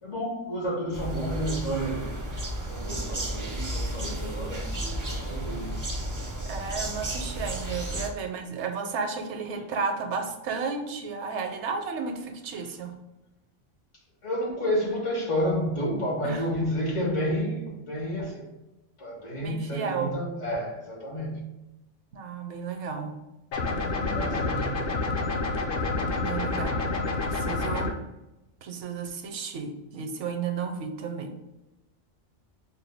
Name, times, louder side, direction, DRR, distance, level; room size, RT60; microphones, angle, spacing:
voice 1, 0.0-2.2 2.7-5.8 14.2-18.5 19.0-21.5 23.7-24.9, equal, 75° left, 1.8 m, -30 dB
sound 1, 0.9-8.1, right 1 dB, 25° right, 0.4 m, -33 dB
voice 2, 6.5-12.9 16.2-16.4 19.4-20.1 22.1-23.1 24.1-24.3 26.2-26.8 27.2-28.0 28.6-31.3, right 5 dB, 75° right, 0.8 m, -33 dB
sound 2, 23.5-27.9, left 3 dB, 60° left, 0.8 m, -28 dB
4.8 x 2.2 x 3.3 m
omnidirectional pair, 1.3 m